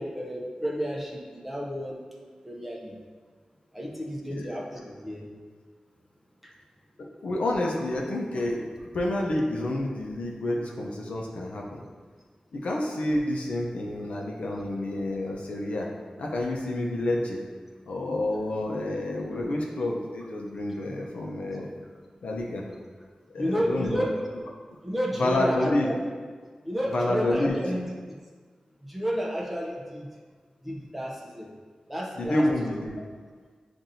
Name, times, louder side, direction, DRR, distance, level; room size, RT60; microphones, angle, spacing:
voice 1, 0.0-2.0 2.4-3.0 3.7-5.3 6.4-6.5 23.4-24.1 24.8-26.0 26.6-28.2 28.8-30.1 30.6-31.5 31.9-32.5, equal, 10° right, -2 dB, 0.7 m, -31 dB
voice 2, 7.0-8.6 8.9-11.8 12.5-15.9 16.2-17.4 17.9-21.7 22.2-22.7 23.3-24.0 25.2-25.9 26.9-27.6 32.2-33.0, left 1 dB, 80° left, -1 dB, 0.7 m, -29 dB
7.4 x 2.6 x 2.7 m, 1.6 s
wide cardioid pair, 105°, 2 cm